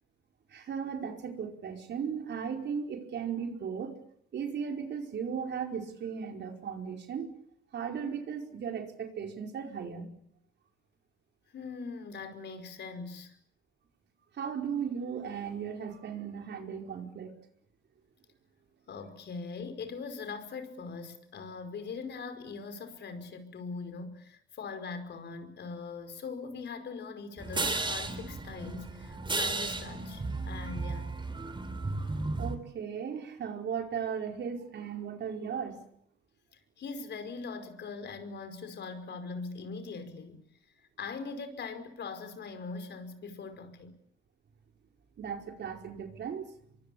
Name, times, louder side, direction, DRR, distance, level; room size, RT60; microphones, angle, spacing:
voice 1, 0.5-4.0 4.3-7.3 7.7-10.1 14.3-17.3 32.4-35.8 45.2-46.5, right 7 dB, 60° right, 5.0 m, -36 dB
voice 2, 11.5-13.4 18.9-31.2 36.5-40.4 41.0-43.9, left 4 dB, 60° left, 5.2 m, -41 dB
sound 1, 27.4-32.6, right 3 dB, 25° right, 4.0 m, -34 dB
25.0 x 23.5 x 8.7 m
cardioid pair, 90°, 20 cm